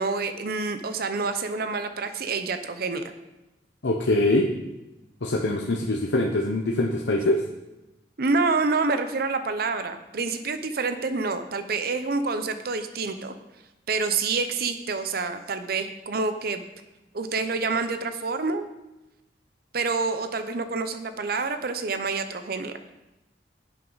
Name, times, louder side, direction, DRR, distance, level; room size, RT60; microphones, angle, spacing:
voice 1, 0.0-3.0 8.2-13.3 13.9-16.6 17.1-18.7 19.7-22.9, right 4 dB, 60° right, 9 dB, 0.7 m, -27 dB
voice 2, 3.8-4.5 5.2-7.4, left 1 dB, 85° left, 0 dB, 0.8 m, -23 dB
10.5 x 8.4 x 4.0 m, 0.99 s
head